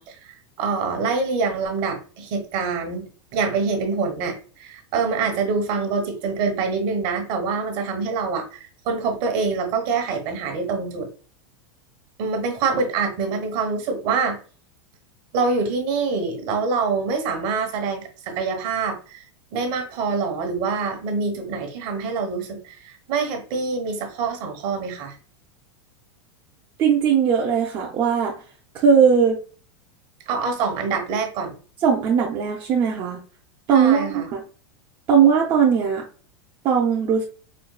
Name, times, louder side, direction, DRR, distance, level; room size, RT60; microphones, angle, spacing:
voice 1, 0.0-11.1 12.2-14.4 15.3-19.2 19.5-25.2 30.3-31.5 33.7-34.3, right 4 dB, 50° right, 4 dB, 1.1 m, -25 dB
voice 2, 26.8-28.4 28.7-29.4 31.8-33.2 33.7-34.4 35.1-36.0 36.6-37.2, right 7 dB, 35° right, -1 dB, 0.6 m, -18 dB
4.5 x 2.2 x 2.2 m, 0.38 s
supercardioid pair, 130°, 15 cm